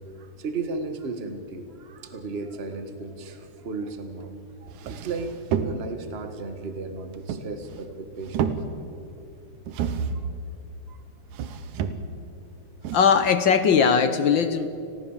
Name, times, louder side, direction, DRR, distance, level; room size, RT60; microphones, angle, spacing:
voice 1, 0.1-4.3 4.6-8.5 10.9-11.0, right 3 dB, 25° right, 7 dB, 1.5 m, -35 dB
sound 1, 4.2-4.3 4.7-6.1 7.1-7.9 8.2-9.0 9.7-10.3 11.3-12.3 12.8-13.0, right 7 dB, 80° right, 2.6 m, -30 dB
voice 2, 12.9-14.7, left 6 dB, 65° left, 11 dB, 1.1 m, -19 dB
29.5 x 21.5 x 7.4 m, 2.7 s
omnidirectional pair, 3.4 m